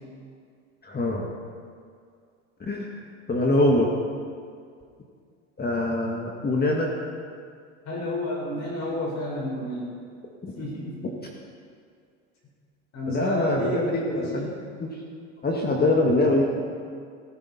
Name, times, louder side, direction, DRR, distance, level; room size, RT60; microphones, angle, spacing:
voice 1, 0.8-1.3 2.7-2.9 3.3-3.9 5.6-6.9 13.1-14.5 14.8-14.9 15.4-16.5, left 2 dB, 25° left, -1 dB, 1.9 m, -23 dB
voice 2, 7.9-9.9 10.6-11.0 12.9-14.5 15.7-15.9, left 1 dB, 45° left, -2 dB, 4.7 m, -31 dB
15.5 x 15.0 x 4.3 m, 2.2 s
hypercardioid pair, 85°, 39 cm